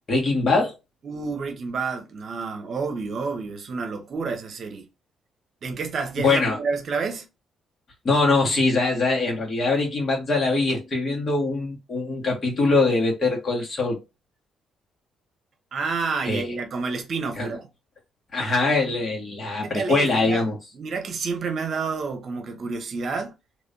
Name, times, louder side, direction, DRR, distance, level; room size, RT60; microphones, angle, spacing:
voice 1, 0.1-0.7 6.2-6.6 8.0-14.0 16.3-16.6 17.4-17.6 18.3-20.6, left 3 dB, 40° left, 1.8 m, -22 dB
voice 2, 1.0-4.9 5.6-7.3 15.7-17.7 19.6-20.4 20.7-23.3, right 4 dB, 55° right, 0.9 m, -29 dB
3.3 x 3.1 x 2.7 m
cardioid pair, 90°, 0 cm